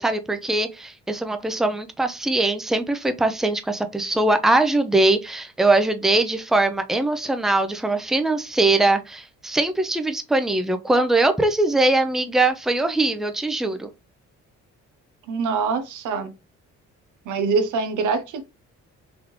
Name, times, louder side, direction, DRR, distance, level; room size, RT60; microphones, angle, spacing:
voice 1, 0.0-13.9, right 2 dB, ahead, 0.5 m, -21 dB
voice 2, 15.3-16.3 17.3-18.4, right 5 dB, 85° right, 0.8 m, -24 dB
3.9 x 3.4 x 3.1 m
cardioid pair, 90°, 30 cm